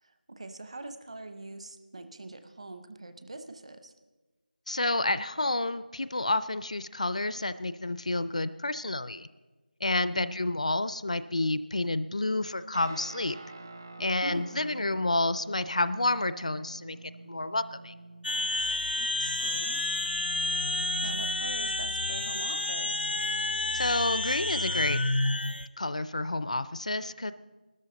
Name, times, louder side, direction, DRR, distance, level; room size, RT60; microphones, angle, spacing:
voice 1, 0.0-3.9 10.1-10.5 14.0-14.6 19.0-19.8 21.0-23.1, right 2 dB, 40° right, 9 dB, 0.8 m, -43 dB
voice 2, 4.7-9.3 9.8-13.4 14.0-17.0 17.2-17.9 23.7-25.0 25.8-27.3, left 2 dB, 45° left, 14 dB, 0.4 m, -29 dB
sound 1, 12.7-22.4, right 2 dB, 20° right, 0.4 m, -48 dB
sound 2, 18.2-25.7, left 2 dB, 85° left, 0.8 m, -30 dB
21.0 x 13.0 x 3.9 m, 1.2 s
figure-of-eight pair, 175°, 5 cm